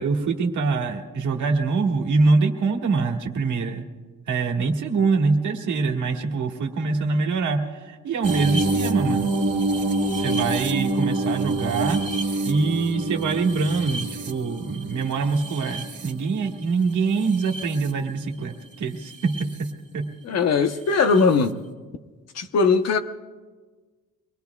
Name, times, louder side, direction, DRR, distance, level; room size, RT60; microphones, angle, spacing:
voice 1, 0.0-3.8 4.3-7.6 7.9-9.3 10.2-12.0 12.4-19.3 19.6-19.7 19.9-20.0, right 4 dB, 70° right, 1.7 m, -24 dB
sound 1, 8.2-16.6 17.1-17.9 19.1-19.4 21.2-21.3, right 2 dB, 40° right, 2.0 m, -27 dB
voice 2, 20.2-21.6 22.3-23.0, left 4 dB, 55° left, 1.0 m, -20 dB
25.0 x 20.5 x 2.3 m
cardioid pair, 120°, 31 cm